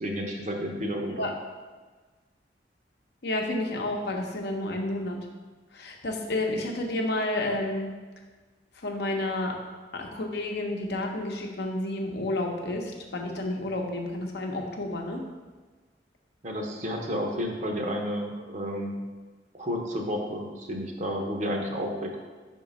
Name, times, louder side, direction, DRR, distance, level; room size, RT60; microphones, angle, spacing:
voice 1, 0.0-1.3 16.4-19.0 19.5-22.2, equal, 45° right, 2 dB, 0.8 m, -31 dB
voice 2, 3.2-5.3 5.7-7.9 8.7-9.6 9.9-15.2, left 1 dB, 65° left, 2 dB, 0.8 m, -30 dB
4.9 x 3.7 x 5.3 m, 1.4 s
head